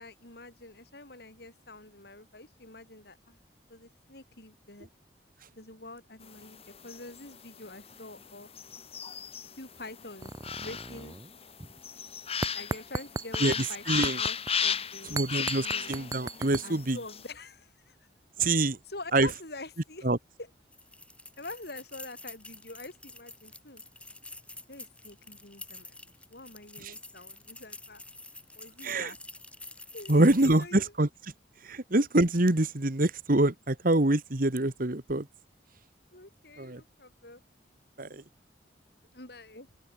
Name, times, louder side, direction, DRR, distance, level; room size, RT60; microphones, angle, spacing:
voice 1, 0.0-3.4 3.7-4.9 5.6-6.6 6.8-8.5 9.5-10.3 10.6-11.2 12.5-15.9 16.6-18.1 18.6-20.1 20.4-20.5 21.4-23.8 24.7-26.0 26.3-28.0 28.6-29.2 29.9-30.9 31.7-31.8 36.1-37.4 39.1-39.7, left 2 dB, 65° left, 5.9 m, -46 dB
sound 1, 6.2-17.3, left 7 dB, 35° left, 3.9 m, -36 dB
sound 2, 10.2-11.3 11.6-11.8 12.4-13.6 14.0-14.5 15.2-16.6, right 3 dB, 20° right, 0.6 m, -36 dB
voice 2, 13.9-14.2 15.1-17.0 18.4-18.8 19.1-19.3 20.0-20.2 28.8-29.1 30.1-31.1 31.7-35.2 36.6-36.8 38.0-38.2, right 2 dB, 55° right, 1.7 m, -25 dB
sound 3, 20.7-30.8, left 2 dB, 5° left, 4.7 m, -48 dB
open air
head